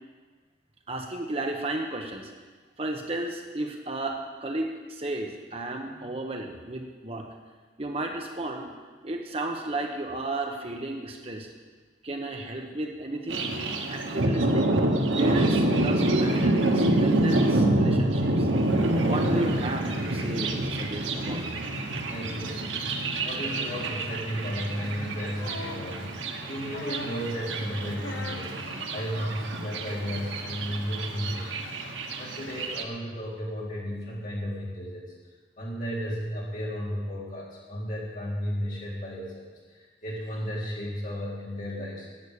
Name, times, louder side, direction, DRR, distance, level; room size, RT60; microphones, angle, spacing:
voice 1, 0.9-2.3 2.8-7.3 7.8-8.7 9.0-11.5 12.0-13.5 13.9-18.5 19.0-21.6, right 2 dB, 30° right, 2 dB, 1.0 m, -33 dB
Thunder, 13.3-32.8, right 1 dB, 85° right, 1.3 m, -27 dB
voice 2, 22.1-22.7 23.2-35.1 35.6-42.1, equal, 45° left, -5 dB, 4.0 m, -34 dB
sound 1, 25.4-25.9 26.7-27.2 28.0-28.5 29.7-29.8, left 2 dB, 65° left, 1.1 m, -39 dB
11.5 x 8.5 x 8.5 m, 1.4 s
head